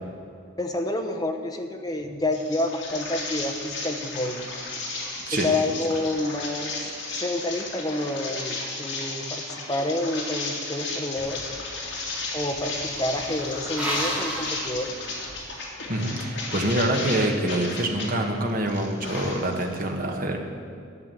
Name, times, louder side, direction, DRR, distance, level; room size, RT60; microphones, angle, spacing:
voice 1, 0.6-4.4 5.3-11.4 12.3-15.0, left 1 dB, 20° left, 4 dB, 0.9 m, -29 dB
sound 1, 2.3-18.1 18.5-19.8, left 3 dB, 60° left, 2.7 m, -34 dB
sound 2, 11.2-15.5, right 1 dB, 5° right, 2.2 m, -35 dB
voice 2, 15.9-20.4, right 1 dB, 45° right, 2 dB, 1.4 m, -26 dB
12.5 x 6.3 x 8.9 m, 2.4 s
head